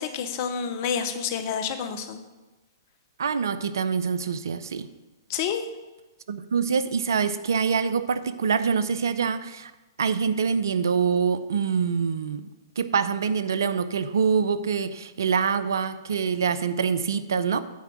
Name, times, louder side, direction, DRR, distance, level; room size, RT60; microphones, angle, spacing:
voice 1, 0.0-2.2 5.3-5.6, left 7 dB, 45° left, 8 dB, 0.9 m, -29 dB
voice 2, 3.2-4.9 6.3-9.7 10.0-12.5 12.8-17.6, right 6 dB, 65° right, 13 dB, 0.5 m, -25 dB
9.3 x 4.5 x 6.3 m, 1.1 s
figure-of-eight pair, 115°, 2 cm